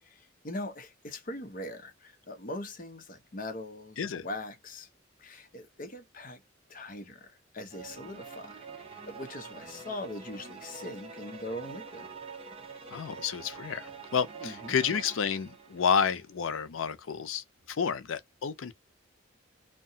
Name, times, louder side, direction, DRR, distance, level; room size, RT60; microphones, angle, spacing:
voice 1, 0.0-4.9 5.2-6.4 6.7-12.1 14.4-14.8, left 1 dB, 40° left, 0.7 m, -41 dB
sound 1, 7.7-16.3, right 4 dB, 30° right, 0.6 m, -46 dB
voice 2, 12.9-18.7, left 6 dB, 80° left, 0.5 m, -30 dB
2.7 x 2.2 x 2.6 m
head